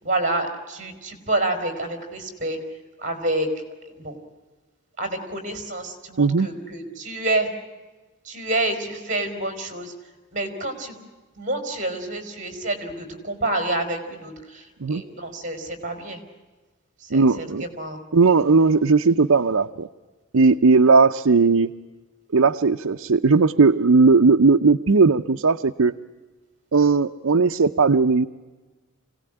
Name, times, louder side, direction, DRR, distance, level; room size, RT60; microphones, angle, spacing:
voice 1, 0.0-2.6 3.0-3.5 4.0-4.2 5.0-7.5 8.2-9.9 10.3-11.0 11.4-16.2 17.0-18.0, right 2 dB, 35° right, 6 dB, 4.3 m, -28 dB
voice 2, 17.1-17.6 18.1-19.9 20.3-21.7 22.3-25.9 26.7-28.3, right 4 dB, 85° right, 4 dB, 0.7 m, -17 dB
25.5 x 17.5 x 9.9 m, 1.2 s
head